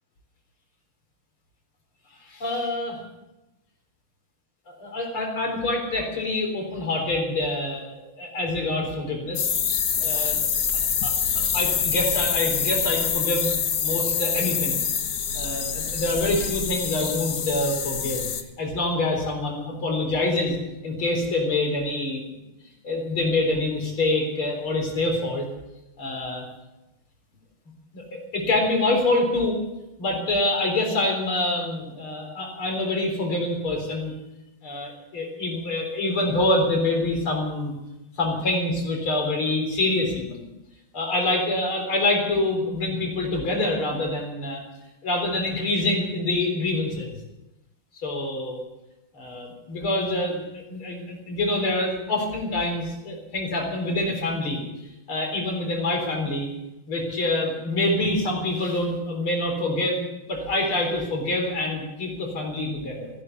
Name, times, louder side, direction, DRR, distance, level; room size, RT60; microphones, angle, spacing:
voice 1, 2.3-3.0 4.7-9.5 10.0-10.5 11.0-11.1 11.5-13.5 13.8-14.8 15.3-18.3 18.6-22.2 22.8-25.5 26.0-26.5 27.9-29.6 30.0-34.1 34.6-37.7 38.2-40.4 40.9-44.6 45.0-47.2 48.0-48.6 49.1-54.6 55.1-56.5 56.9-60.0 60.3-63.1, left 2 dB, 75° left, 1 dB, 4.8 m, -26 dB
sound 1, 9.4-18.4, left 7 dB, 50° left, 1.4 m, -26 dB
15.5 x 11.0 x 8.2 m, 0.96 s
omnidirectional pair, 2.3 m